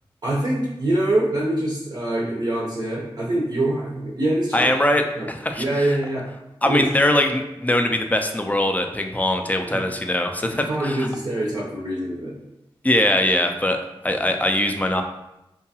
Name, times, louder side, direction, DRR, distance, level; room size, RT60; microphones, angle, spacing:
voice 1, 0.2-4.7 5.2-5.3 5.6-6.2 6.6-6.9 9.7-9.8 10.6-12.3, right 1 dB, 45° right, -5 dB, 0.6 m, -24 dB
voice 2, 4.5-5.6 6.6-11.1 12.8-13.8 14.0-15.0, left 1 dB, 15° left, 5 dB, 0.3 m, -21 dB
2.7 x 2.3 x 2.7 m, 0.92 s
cardioid pair, 45°, 10 cm